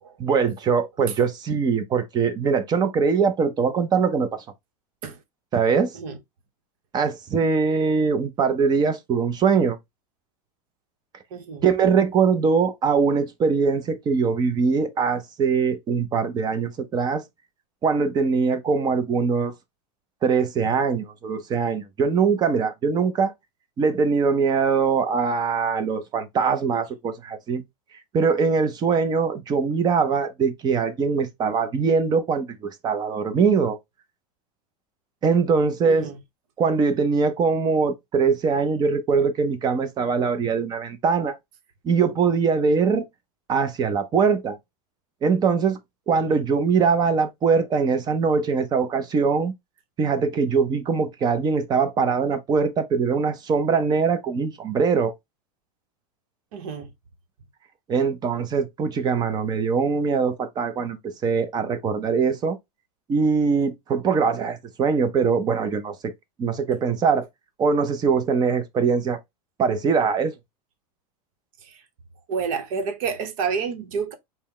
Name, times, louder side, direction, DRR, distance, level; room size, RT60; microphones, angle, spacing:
voice 1, 0.2-4.4 5.5-6.0 6.9-9.8 11.6-17.2 17.8-19.5 20.2-23.3 23.8-27.6 28.1-33.8 35.2-36.1 36.6-41.4 41.8-43.1 43.5-44.6 45.2-45.8 46.1-49.5 50.0-55.1 57.9-62.6 63.1-66.1 66.4-67.3 67.6-69.2 69.6-70.3, right 5 dB, 20° right, 0.5 m, -22 dB
voice 2, 11.3-11.7 35.8-36.2 46.1-46.4 56.5-56.9 71.6-71.8 72.3-74.1, right 5 dB, 65° right, 1.0 m, -29 dB
4.1 x 2.1 x 3.7 m
supercardioid pair, 145°, 19 cm